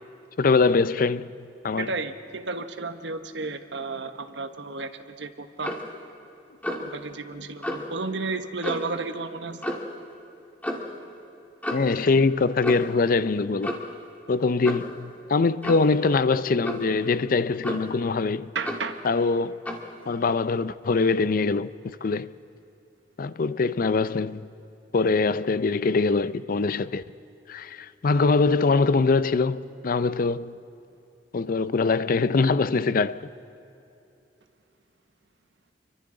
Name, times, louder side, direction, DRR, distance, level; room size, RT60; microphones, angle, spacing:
voice 1, 0.4-1.3 1.6-1.9 11.7-13.8 14.3-18.5 19.0-19.6 20.1-22.3 23.2-24.4 24.9-27.0 27.5-30.6 31.3-33.2, left 4 dB, 50° left, 0.5 m, -23 dB
voice 2, 1.8-5.7 6.8-9.6 18.5-19.0, right 3 dB, 75° right, 1.1 m, -33 dB
Clock, 5.6-5.9 6.6-6.9 7.6-7.9 8.6-9.0 9.6-9.9 10.6-10.9 11.6-11.9 12.6-13.0 13.6-14.0 14.6-14.9 15.6-15.9 16.6-16.9 17.6-18.0 18.6-18.9 19.6-19.9, equal, 10° left, 2.1 m, -32 dB
29.5 x 24.0 x 3.9 m
head